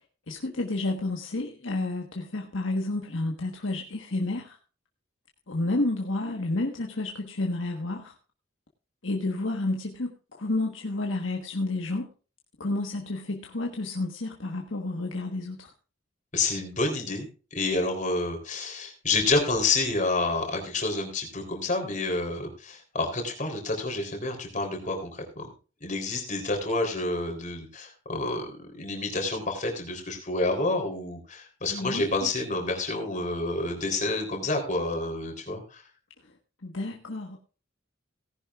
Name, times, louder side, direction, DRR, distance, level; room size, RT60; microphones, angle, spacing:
voice 1, 0.3-4.6 5.5-8.1 9.0-12.1 12.6-15.7 31.6-32.3 36.6-37.4, left 2 dB, 70° left, 2 dB, 1.4 m, -30 dB
voice 2, 16.3-25.5 25.8-35.8, left 2 dB, 40° left, 3 dB, 3.6 m, -29 dB
18.0 x 10.5 x 2.5 m, 0.35 s
head